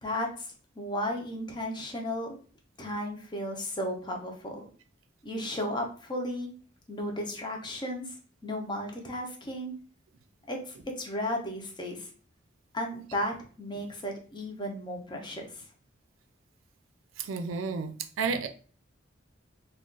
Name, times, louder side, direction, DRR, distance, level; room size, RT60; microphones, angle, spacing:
voice 1, 0.0-0.5 0.8-2.4 2.8-4.7 5.2-6.5 6.9-8.0 8.4-9.7 10.5-12.1 12.7-15.6, left 1 dB, 25° left, 1 dB, 0.6 m, -34 dB
voice 2, 17.2-18.5, right 5 dB, 80° right, 8 dB, 0.4 m, -32 dB
2.4 x 2.3 x 3.7 m, 0.41 s
head